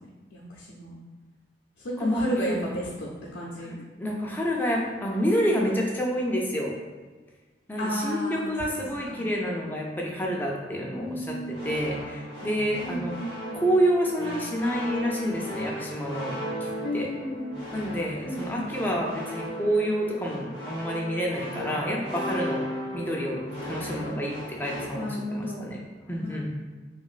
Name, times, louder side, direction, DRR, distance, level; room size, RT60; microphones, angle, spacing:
voice 1, 0.3-0.9 1.8-3.8 7.8-8.5 9.1-9.2 11.0-11.7 12.8-13.6 16.8-17.7 18.2-18.7 24.9-25.7 26.2-26.5, equal, 80° left, -5 dB, 0.5 m, -33 dB
voice 2, 2.0-2.6 3.6-3.7 4.0-6.7 7.7-13.2 13.5-17.1 17.7-22.7 22.9-26.5, equal, 10° left, -2 dB, 0.4 m, -28 dB
sound 1, 11.5-24.9, right 1 dB, 85° right, 1.4 m, -36 dB
3.0 x 2.8 x 2.4 m, 1.3 s
head